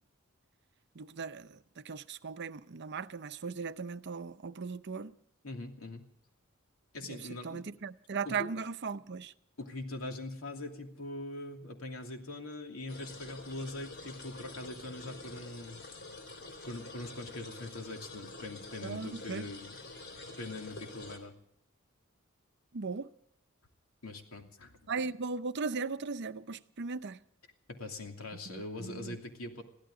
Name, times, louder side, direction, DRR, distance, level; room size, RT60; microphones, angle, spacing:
voice 1, 0.9-5.1 7.1-7.2 7.4-9.3 18.8-19.5 22.7-23.1 24.9-27.2 28.5-29.2, right 4 dB, 55° right, 0.7 m, -38 dB
voice 2, 5.4-6.0 6.9-7.8 8.2-8.5 9.6-15.8 16.6-19.8 20.4-21.3 24.0-24.8 27.7-29.6, left 2 dB, 90° left, 2.8 m, -42 dB
sound 1, 12.9-21.2, left 3 dB, 55° left, 3.3 m, -47 dB
22.5 x 15.5 x 3.8 m
head